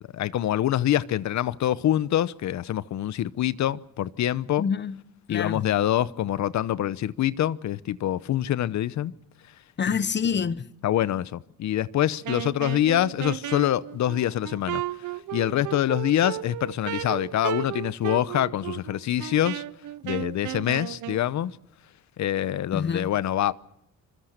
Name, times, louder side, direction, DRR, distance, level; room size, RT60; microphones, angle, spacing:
voice 1, 0.1-4.7 5.3-9.1 10.8-14.8 15.3-19.6 20.0-21.5 22.2-23.5, left 12 dB, 70° left, 0.9 m, -25 dB
voice 2, 4.6-5.0 5.3-5.6 9.8-10.7 22.7-23.1, left 6 dB, 35° left, 1.0 m, -26 dB
Wind instrument woodwind instrument, 12.2-21.2, right 14 dB, 80° right, 0.9 m, -34 dB
25.5 x 22.5 x 6.6 m
cardioid pair, 90°, 30 cm